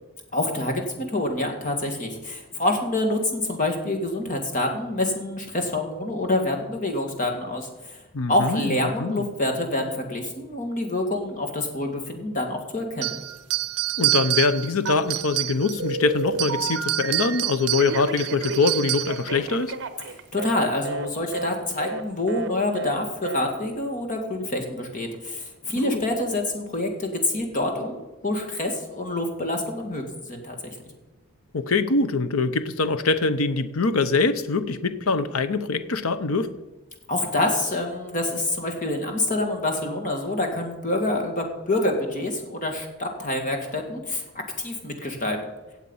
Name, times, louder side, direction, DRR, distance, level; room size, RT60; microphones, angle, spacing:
voice 1, 0.3-8.0 8.3-13.1 20.1-30.8 37.1-44.2 44.6-45.4, left 1 dB, 35° left, 4 dB, 2.1 m, -27 dB
voice 2, 8.1-9.2 14.0-19.7 25.8-26.0 31.5-36.5, left 3 dB, 70° left, 11 dB, 0.8 m, -23 dB
sound 1, 13.0-15.9 16.3-19.3, right 18 dB, 80° right, 0.5 m, -27 dB
Telephone, 14.8-15.4 15.8-17.4 17.8-20.6 20.8-21.1 21.3-21.5 21.8-22.0 22.3-22.5 22.7-23.0 23.2-23.4, right 4 dB, 55° right, 0.9 m, -32 dB
17.0 x 7.4 x 5.6 m, 1.1 s
head